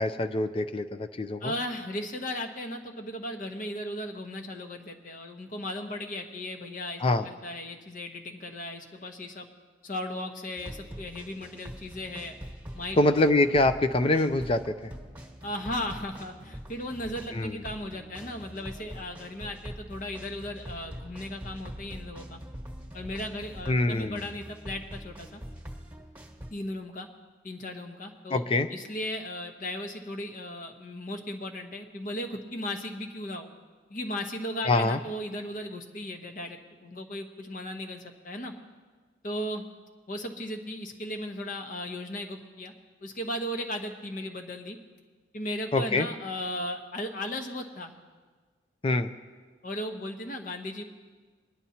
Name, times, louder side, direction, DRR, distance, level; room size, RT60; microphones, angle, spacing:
voice 1, 0.0-1.5 7.0-7.3 13.0-14.9 17.3-17.6 23.7-24.3 28.3-28.7 34.6-35.0 45.7-46.1 48.8-49.1, left 2 dB, 30° left, 9 dB, 0.4 m, -25 dB
voice 2, 1.4-9.5 9.8-12.4 12.7-13.0 15.4-22.4 22.9-25.4 26.5-27.1 27.4-28.4 28.7-33.5 33.9-38.5 39.2-39.6 40.1-42.7 43.0-44.8 45.3-47.9 49.6-50.8, left 1 dB, 45° left, 4 dB, 1.0 m, -36 dB
sound 1, 10.6-26.5, equal, 10° right, 1.4 m, -44 dB
22.0 x 10.5 x 2.8 m, 1.4 s
head